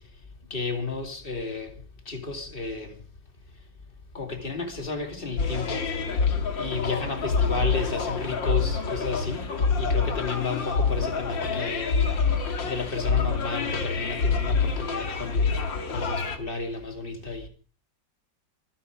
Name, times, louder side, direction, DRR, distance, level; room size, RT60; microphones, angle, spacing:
voice 1, 0.5-1.7 2.1-2.9 4.1-5.8 6.6-9.5 9.8-12.0 12.6-15.4 15.9-17.5, left 4 dB, 30° left, 2.8 m, -32 dB
sound 1, 5.4-16.4, left 5 dB, 75° left, 2.8 m, -26 dB
24.5 x 10.5 x 5.0 m
omnidirectional pair, 2.0 m